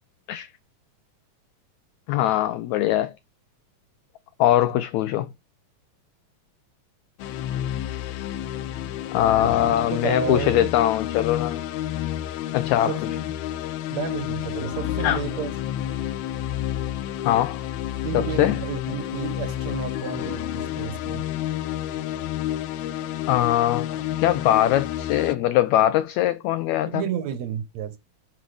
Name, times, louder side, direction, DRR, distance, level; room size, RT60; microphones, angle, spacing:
voice 1, 2.1-3.1 4.4-5.3 9.1-11.6 12.5-12.9 15.0-15.2 17.2-17.6 18.1-18.6 23.3-27.0, left 13 dB, 90° left, 1.6 m, -22 dB
sound 1, 7.2-25.4, left 12 dB, 75° left, 1.9 m, -30 dB
voice 2, 9.4-10.7 12.9-13.0 13.9-15.5 18.0-21.2 26.9-28.0, right 9 dB, 70° right, 1.9 m, -31 dB
9.7 x 5.4 x 3.3 m
omnidirectional pair, 3.8 m